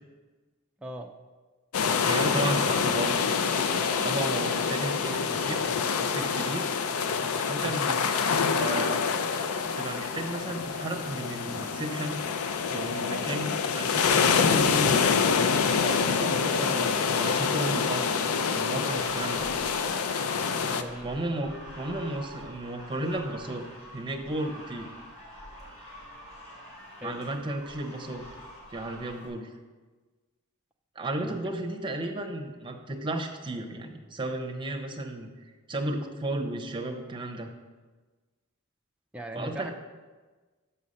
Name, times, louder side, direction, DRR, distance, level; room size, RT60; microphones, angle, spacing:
voice 1, 0.8-1.1 20.7-21.1 27.0-27.2 31.2-31.5 39.1-39.7, right 1 dB, 5° right, 2 dB, 0.3 m, -39 dB
sound 1, 1.7-20.8, left 5 dB, 75° left, 0.5 m, -26 dB
voice 2, 2.0-3.2 4.0-5.7 6.0-6.7 7.5-9.0 9.3-9.5 9.8-12.2 12.7-15.0 15.8-18.1 18.5-19.5 21.0-23.7 23.9-24.9 27.0-28.2 28.7-29.5 31.0-35.3 35.7-37.5 39.3-39.7, right 1 dB, 20° right, 4 dB, 0.7 m, -34 dB
sound 2, 18.9-29.3, equal, 30° left, 2.8 m, -45 dB
5.6 x 5.5 x 6.5 m, 1.3 s
head